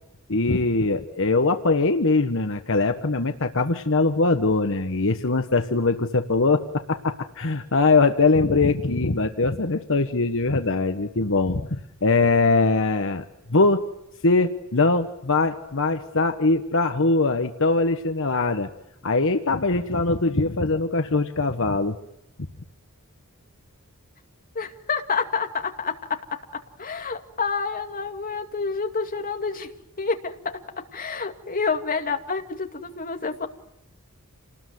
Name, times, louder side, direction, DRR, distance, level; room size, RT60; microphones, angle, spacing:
voice 1, 0.3-13.2 13.5-13.8 14.2-18.7 19.0-22.0, left 3 dB, 60° left, 7 dB, 1.3 m, -22 dB
voice 2, 24.6-26.2 26.8-29.7 30.0-30.6 30.9-33.5, left 5 dB, 40° left, 5 dB, 2.3 m, -28 dB
28.5 x 19.5 x 9.4 m, 0.88 s
head